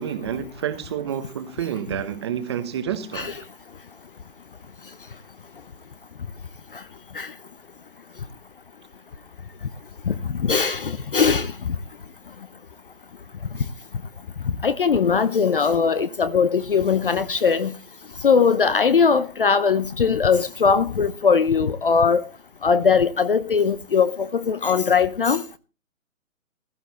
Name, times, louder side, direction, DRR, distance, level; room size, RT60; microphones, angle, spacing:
voice 1, 0.0-3.3, right 9 dB, 20° right, 0.9 m, -29 dB
voice 2, 10.1-11.5 14.6-17.8 18.2-22.3 22.6-25.4, left 5 dB, 40° left, 0.6 m, -20 dB
15.5 x 12.0 x 4.1 m
hypercardioid pair, 160°, 42 cm